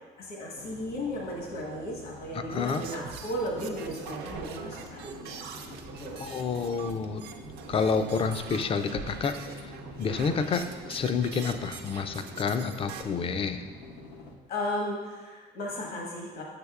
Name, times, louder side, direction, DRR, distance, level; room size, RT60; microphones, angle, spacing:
voice 1, 0.2-6.2 14.5-16.4, left 1 dB, 65° left, -2 dB, 1.2 m, -35 dB
sound 1, 0.6-14.4, left 2 dB, 90° left, 0.7 m, -47 dB
voice 2, 2.3-2.9 6.2-7.2 7.7-9.7 10.0-13.6, left 5 dB, 35° left, 9 dB, 0.4 m, -29 dB
sound 2, 2.5-13.0, right 6 dB, 75° right, 0.5 m, -43 dB
6.6 x 6.2 x 2.3 m, 1.4 s
cardioid pair, 110°, 17 cm